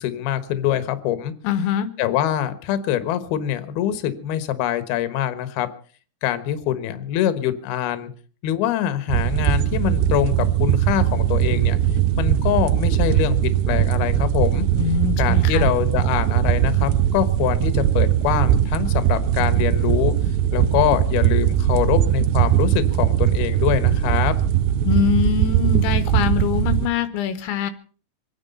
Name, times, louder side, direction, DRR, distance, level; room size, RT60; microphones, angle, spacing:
voice 1, 0.0-1.3 2.0-5.7 6.2-8.1 8.4-11.8 12.2-14.7 15.2-20.1 20.5-24.3, left 11 dB, 65° left, 11 dB, 2.9 m, -24 dB
voice 2, 1.4-1.9 14.7-15.7 24.8-27.7, left 9 dB, 85° left, 12 dB, 3.2 m, -23 dB
sound 1, 9.1-26.9, right 11 dB, 75° right, 2.5 m, -20 dB
25.0 x 9.8 x 5.4 m, 0.40 s
omnidirectional pair, 5.3 m